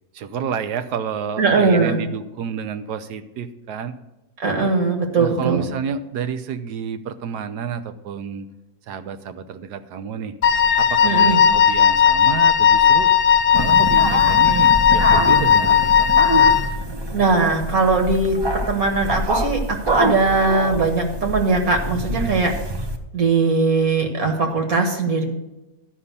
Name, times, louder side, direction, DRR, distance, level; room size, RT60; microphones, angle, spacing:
voice 1, 0.1-4.0 5.2-8.5 8.9-10.3 10.8-13.1 13.5-16.2 22.1-22.4, right 7 dB, 80° right, 10 dB, 1.3 m, -30 dB
voice 2, 1.4-2.0 4.4-5.7 11.0-11.4 17.1-18.4 18.7-22.5 23.1-25.2, right 4 dB, 60° right, 3 dB, 2.0 m, -20 dB
Wind instrument woodwind instrument, 10.4-16.8, left 8 dB, 65° left, 0.5 m, -16 dB
sound 1, 13.5-23.0, right 1 dB, 35° right, 0.4 m, -26 dB
12.5 x 5.6 x 6.7 m, 0.99 s
omnidirectional pair, 1.8 m